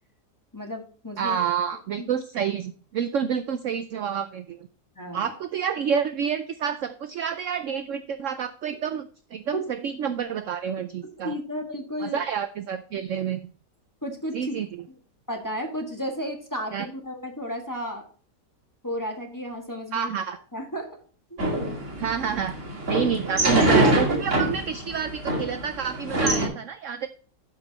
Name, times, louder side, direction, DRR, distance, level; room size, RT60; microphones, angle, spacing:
voice 1, 0.5-1.4 2.0-2.1 4.9-5.3 9.5-9.6 11.0-12.2 14.0-14.6 15.3-18.0 18.8-20.1 20.5-21.0 21.3-21.4, equal, 10° left, 2 dB, 1.5 m, -33 dB
voice 2, 1.2-4.6 5.1-11.3 12.0-13.5 14.3-14.7 16.7-16.9 19.9-20.4 22.0-22.6 22.9-27.1, right 7 dB, 65° right, 10 dB, 0.8 m, -28 dB
sound 1, 21.4-26.5, right 1 dB, 45° right, 2.7 m, -24 dB
12.5 x 4.9 x 4.1 m, 0.42 s
omnidirectional pair, 1.8 m